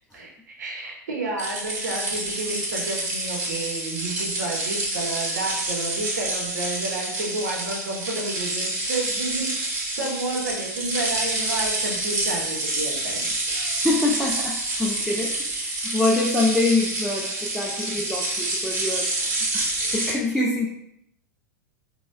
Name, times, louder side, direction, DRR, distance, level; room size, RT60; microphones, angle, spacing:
voice 1, 0.1-13.5 19.8-19.9, right 2 dB, 75° right, -1 dB, 0.9 m, -31 dB
sound 1, 1.4-20.1, right 2 dB, 35° right, 1.0 m, -28 dB
voice 2, 13.5-19.1 19.5-20.7, left 2 dB, 5° left, -5 dB, 0.4 m, -25 dB
4.0 x 2.2 x 2.2 m, 0.77 s
figure-of-eight pair, 90°, 9 cm